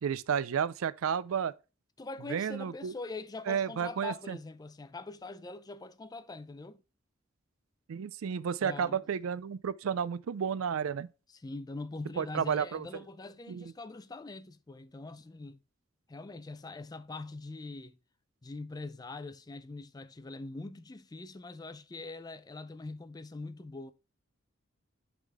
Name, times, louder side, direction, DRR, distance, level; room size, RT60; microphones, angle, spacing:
voice 1, 0.0-1.5 2.3-2.9 3.5-4.4 7.9-11.1 12.2-13.0 13.5-13.6, right 7 dB, 90° right, 0.4 m, -32 dB
voice 2, 2.0-6.8 8.6-9.0 11.3-15.6 16.1-18.0 18.4-23.9, left 3 dB, 20° left, 0.4 m, -43 dB
11.0 x 3.7 x 3.5 m
head